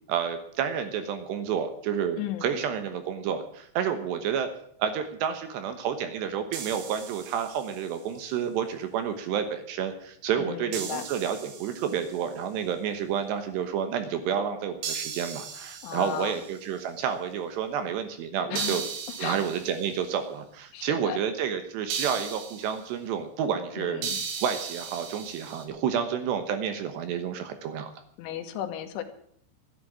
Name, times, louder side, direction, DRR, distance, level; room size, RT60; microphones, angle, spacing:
voice 1, 0.1-4.5 4.8-18.8 19.2-24.0 24.4-27.9, right 8 dB, 70° right, 8 dB, 3.0 m, -30 dB
voice 2, 2.2-2.5 10.4-11.1 15.8-16.4 18.5-18.8 19.2-19.4 20.7-21.2 23.8-24.2 28.2-29.0, left 11 dB, 80° left, 7 dB, 3.6 m, -35 dB
sound 1, 6.5-8.0 10.7-12.3 14.8-16.7 18.6-20.0 21.9-22.8 24.0-25.6, right 6 dB, 90° right, 4.7 m, -37 dB
13.0 x 10.5 x 8.7 m, 0.66 s
omnidirectional pair, 5.7 m